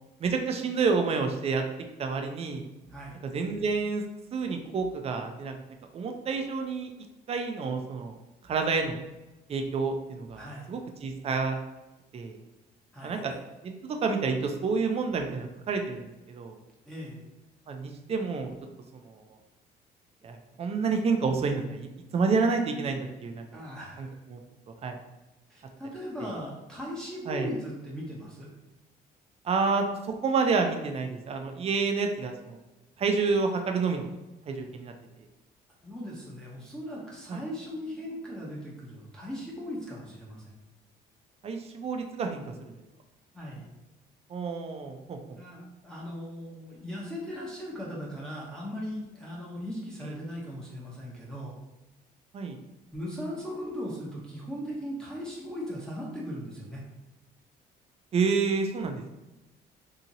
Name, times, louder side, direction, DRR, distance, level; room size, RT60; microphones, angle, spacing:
voice 1, 0.2-1.6 2.0-2.6 3.2-4.0 4.3-5.5 5.9-6.9 7.3-8.2 8.5-9.0 9.5-11.6 12.1-12.4 13.0-13.3 13.6-16.0 16.3-16.6 17.7-18.5 19.0-19.2 20.2-23.7 24.0-24.4 24.8-25.0 26.2-26.3 27.3-27.5 29.4-29.8 30.2-32.6 33.0-34.1 34.5-34.9 37.3-37.4 41.4-42.7 44.3-45.2 50.0-50.1 52.3-52.6 58.1-59.0, right 4 dB, 40° right, 4 dB, 0.4 m, -29 dB
voice 2, 2.9-3.2 10.3-10.7 12.9-13.3 16.9-17.2 23.5-24.1 25.5-28.5 35.8-40.5 43.3-43.6 45.4-51.5 52.9-56.8, equal, 5° left, -6 dB, 0.7 m, -38 dB
2.8 x 2.8 x 2.6 m, 1.0 s
cardioid pair, 110°, 17 cm